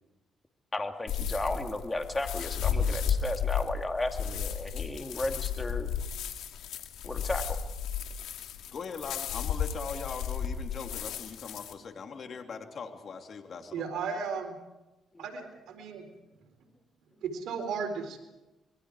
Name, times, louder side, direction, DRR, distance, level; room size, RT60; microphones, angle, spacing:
voice 1, 0.7-5.9 7.0-7.6 11.6-11.7 12.4-12.5 13.7-13.8 15.1-15.5, left 2 dB, 20° left, 4 dB, 2.6 m, -34 dB
sound 1, 1.1-11.7, left 7 dB, 85° left, 2.3 m, -33 dB
voice 2, 8.7-13.8, left 5 dB, 50° left, 4 dB, 2.9 m, -40 dB
voice 3, 13.7-14.6 15.2-16.0 17.2-18.2, right 5 dB, 80° right, 4 dB, 4.1 m, -35 dB
26.0 x 22.5 x 4.9 m, 1.0 s
cardioid pair, 90°, 0 cm